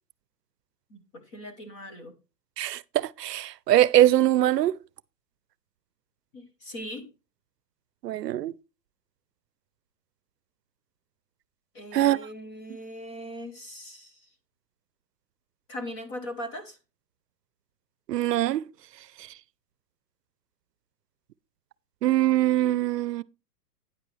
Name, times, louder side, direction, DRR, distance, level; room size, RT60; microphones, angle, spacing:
voice 1, 0.9-2.1 6.3-7.1 11.7-14.1 15.7-16.8, equal, 20° left, 0.9 m, -39 dB
voice 2, 2.6-4.8 8.0-8.5 11.9-12.2 18.1-18.7 19.2-19.3 22.0-23.2, right 13 dB, 85° right, 0.6 m, -22 dB
9.7 x 8.2 x 3.3 m
hypercardioid pair, 165°, 48 cm